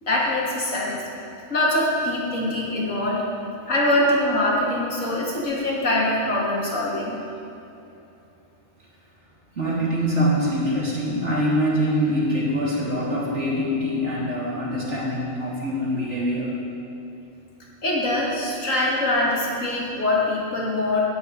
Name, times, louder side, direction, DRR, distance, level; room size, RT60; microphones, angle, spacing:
voice 1, 0.0-1.0 1.5-3.2 3.7-7.2 17.8-21.0, left 1 dB, 70° left, -4 dB, 2.7 m, -23 dB
voice 2, 9.5-16.5, equal, 55° right, -6 dB, 3.1 m, -24 dB
15.5 x 11.5 x 4.1 m, 2.8 s
omnidirectional pair, 1.4 m